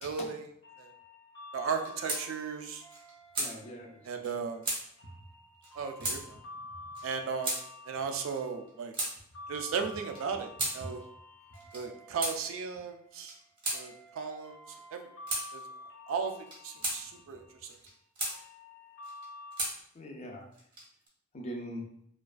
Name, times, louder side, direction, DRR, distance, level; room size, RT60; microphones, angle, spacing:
voice 1, 0.0-0.4 0.8-0.9 1.5-2.8 4.0-4.6 5.8-6.4 7.0-7.5 7.9-8.9 9.5-11.0 11.7-13.3 13.7-14.6 14.9-15.1 15.5-15.6 16.1-16.3 16.6-17.7, right 5 dB, 80° right, 5 dB, 0.3 m, -36 dB
sound 1, 0.6-19.7, left 2 dB, 75° left, 0.7 m, -50 dB
sound 2, 1.7-2.2 2.6-2.7 2.9-3.5 4.2-4.3 4.6-4.8 5.6-5.7 6.0-6.2 6.9-7.1 7.4-7.6 8.3-9.1 9.9-10.8 11.5-11.8 12.2-12.4 13.1-13.8 14.7-14.8 15.3-15.5 16.3-17.0 17.7-18.4 19.0-19.7 20.5-21.1, right 2 dB, 25° right, 0.6 m, -34 dB
voice 2, 3.4-4.0 4.3-4.4 6.0-6.1 6.6-6.7 10.8-10.9 19.9-20.5 21.3-21.9, equal, 35° left, 2 dB, 0.4 m, -42 dB
2.4 x 2.2 x 2.3 m, 0.67 s
head